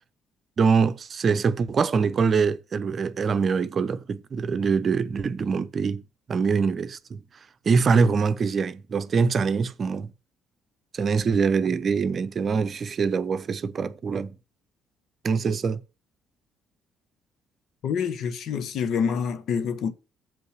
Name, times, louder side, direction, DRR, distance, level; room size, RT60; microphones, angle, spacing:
voice 1, 0.6-6.0 6.3-7.2 7.7-10.1 10.9-14.4 15.2-15.8, right 5 dB, 40° right, 0.7 m, -24 dB
voice 2, 17.8-19.9, left 6 dB, 55° left, 1.0 m, -27 dB
7.5 x 5.5 x 7.3 m
figure-of-eight pair, 45°, 0 cm